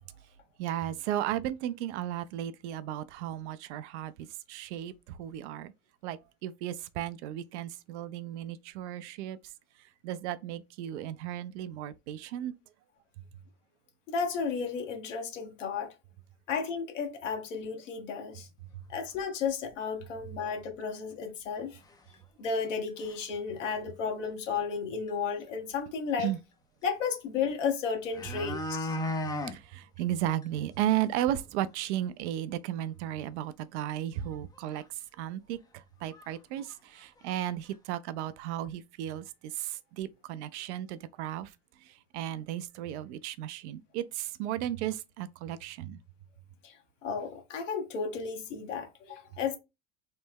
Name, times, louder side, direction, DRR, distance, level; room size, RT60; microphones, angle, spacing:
voice 1, 0.6-5.7 6.0-9.4 10.0-12.5 26.2-26.4 29.5-34.8 35.2-41.5 41.8-46.0, right 12 dB, 65° right, 0.5 m, -35 dB
voice 2, 14.1-15.9 16.5-18.5 18.9-21.8 22.4-26.3 26.8-29.0 46.6-46.7 47.0-49.6, left 6 dB, 80° left, 1.0 m, -33 dB
sound 1, 19.1-19.2 19.7-19.8 20.2-20.3 21.2-21.3 21.9-22.2 22.4-22.5 22.9-23.3 24.7-24.8 25.1-25.2 27.5-27.6 27.9-29.6 30.0-30.1 30.4-30.5 30.9-31.0 31.3-31.4 34.2-34.3 34.7-34.8 35.6-35.7 36.1-36.3 36.6-37.4 37.7-37.8, left 1 dB, 10° left, 0.4 m, -36 dB
3.2 x 2.1 x 3.4 m
hypercardioid pair, 90°, 37 cm